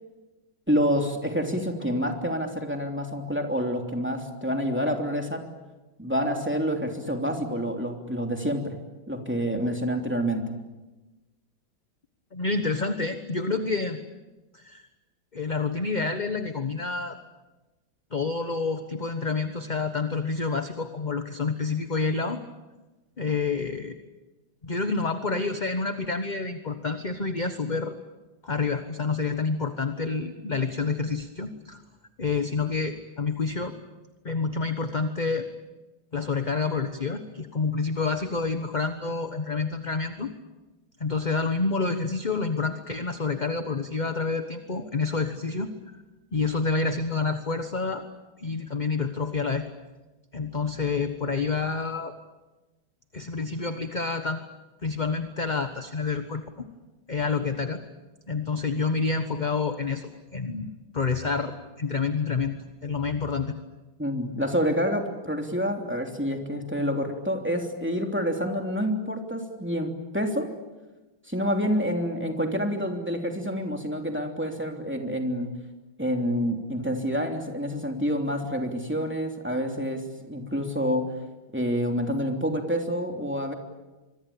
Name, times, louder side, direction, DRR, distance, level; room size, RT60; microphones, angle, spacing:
voice 1, 0.7-5.4 6.0-8.8 9.1-10.4 64.0-70.5 71.3-75.5 76.0-81.1 81.5-83.5, equal, 5° right, 3 dB, 3.0 m, -28 dB
voice 2, 12.3-14.0 14.5-14.8 15.3-17.2 18.1-22.4 23.2-24.0 24.6-27.9 28.4-31.8 32.2-33.7 34.2-35.5 36.1-40.3 41.0-45.7 46.3-48.0 48.4-49.7 50.3-52.1 53.1-54.4 54.8-56.4 57.1-57.8 58.3-63.5, left 4 dB, 25° left, 8 dB, 1.1 m, -28 dB
25.5 x 23.5 x 8.7 m, 1.1 s
omnidirectional pair, 2.2 m